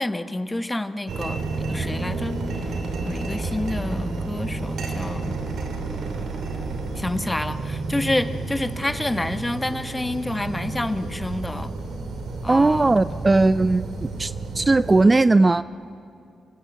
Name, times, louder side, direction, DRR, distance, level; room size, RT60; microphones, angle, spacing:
voice 1, 0.0-2.8 3.0-5.3 7.0-11.7 12.4-12.9, left 1 dB, 15° left, 11 dB, 1.2 m, -28 dB
sound 1, 1.1-15.0, right 3 dB, 70° right, 2.9 m, -30 dB
voice 2, 12.5-15.6, right 2 dB, 30° right, 16 dB, 0.5 m, -18 dB
26.0 x 15.5 x 7.9 m, 2.4 s
hypercardioid pair, 45°, 0 cm